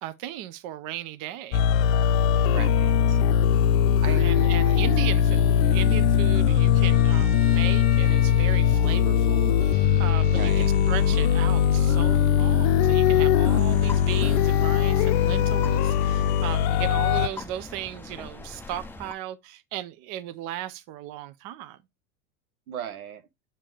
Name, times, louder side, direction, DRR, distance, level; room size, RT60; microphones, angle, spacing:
voice 1, 0.0-1.7 4.2-21.8, right 13 dB, 45° right, 0.7 m, -36 dB
sound 1, 1.5-17.3, left 9 dB, 55° left, 0.6 m, -20 dB
voice 2, 2.5-3.2 4.0-4.8 10.3-10.7 22.7-23.2, right 9 dB, 80° right, 1.1 m, -37 dB
Bowed string instrument, 6.8-12.0, left 7 dB, 20° left, 1.3 m, -38 dB
sound 2, 13.5-19.1, left 2 dB, 5° left, 0.5 m, -41 dB
7.2 x 2.8 x 4.7 m
hypercardioid pair, 95°, 42 cm